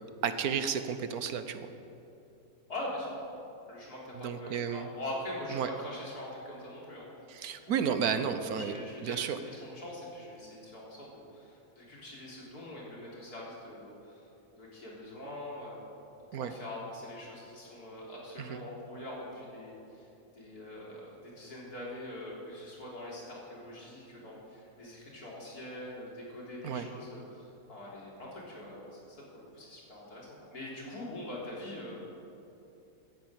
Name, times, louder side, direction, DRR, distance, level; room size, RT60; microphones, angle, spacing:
voice 1, 0.2-1.7 4.1-4.9 5.5-5.7 7.3-9.4 16.3-16.5 18.4-18.6 26.6-26.9, right 7 dB, 75° right, 10 dB, 1.4 m, -32 dB
voice 2, 2.7-3.1 3.7-7.1 7.6-14.2 14.6-15.8 16.3-20.1 20.3-32.1, left 1 dB, 80° left, -5 dB, 4.1 m, -43 dB
14.5 x 10.0 x 8.9 m, 2.8 s
omnidirectional pair, 1.6 m